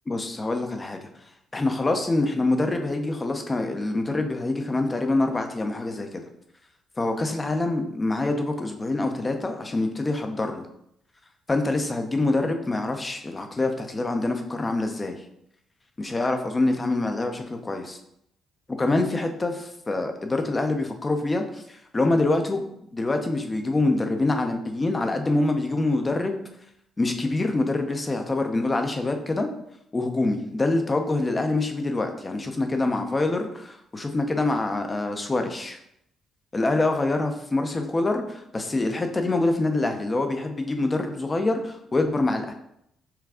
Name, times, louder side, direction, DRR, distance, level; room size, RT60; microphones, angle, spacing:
voice 1, 0.1-1.0 1.5-6.3 7.0-10.7 11.5-15.2 16.0-18.0 18.7-22.7 22.9-26.4 27.0-29.5 29.9-35.8 36.5-42.5, left 2 dB, 25° left, 5 dB, 0.6 m, -25 dB
5.8 x 2.2 x 3.6 m, 0.75 s
cardioid pair, 90°, 0 cm